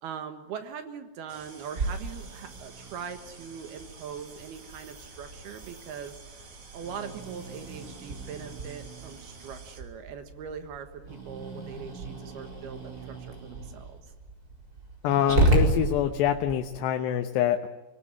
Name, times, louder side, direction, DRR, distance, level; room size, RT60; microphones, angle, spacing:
voice 1, 0.0-6.5 6.7-14.0, right 7 dB, 70° right, 8 dB, 3.3 m, -41 dB
sound 1, 1.3-9.8, right 4 dB, 45° right, 4.1 m, -50 dB
Growling, 1.8-16.5, right 2 dB, 20° right, 4.7 m, -33 dB
voice 2, 15.0-17.7, left 10 dB, 90° left, 5 dB, 3.3 m, -25 dB
25.0 x 19.5 x 9.9 m, 1.2 s
omnidirectional pair, 4.8 m